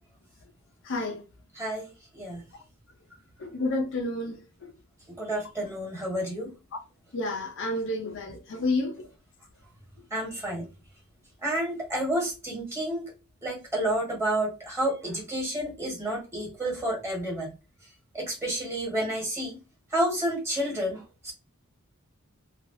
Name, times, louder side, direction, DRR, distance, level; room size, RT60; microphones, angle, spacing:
voice 1, 0.8-1.2 3.4-4.7 7.1-9.1, left 2 dB, 60° left, 0.5 m, -30 dB
voice 2, 1.5-2.4 5.2-6.5 10.1-10.7 11.4-13.1 13.4-17.5 18.1-19.6 19.9-21.3, right 1 dB, 15° right, 1.4 m, -30 dB
3.1 x 2.3 x 2.6 m
head